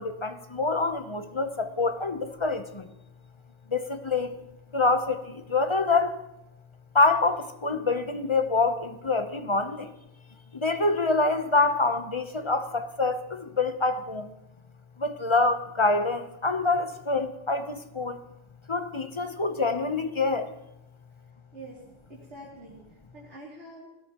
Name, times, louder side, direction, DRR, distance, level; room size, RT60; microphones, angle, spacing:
voice 1, 0.0-2.9 3.7-4.3 4.7-6.2 6.9-9.9 10.5-14.3 15.0-18.2 18.7-20.5, left 3 dB, 30° left, 8 dB, 0.7 m, -26 dB
voice 2, 21.5-21.8 22.1-23.9, right 1 dB, 65° right, -8 dB, 3.1 m, -46 dB
20.5 x 17.0 x 3.0 m, 0.90 s
omnidirectional pair, 1.3 m